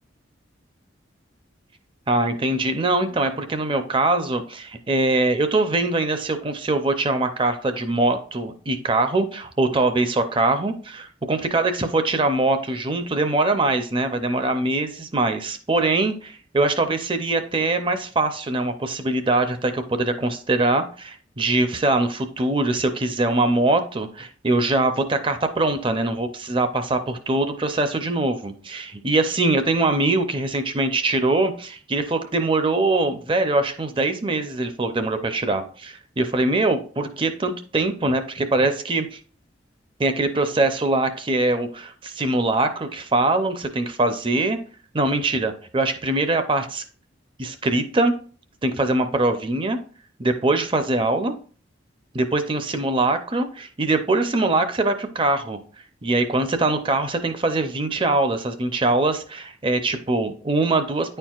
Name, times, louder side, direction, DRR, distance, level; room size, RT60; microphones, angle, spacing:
voice 1, 2.1-39.2 40.0-44.6 44.9-46.8 47.4-48.1 48.6-49.8 50.2-51.3 52.1-55.6 56.0-61.2, right 2 dB, 25° right, 8 dB, 0.5 m, -22 dB
9.6 x 4.4 x 2.4 m, 0.43 s
head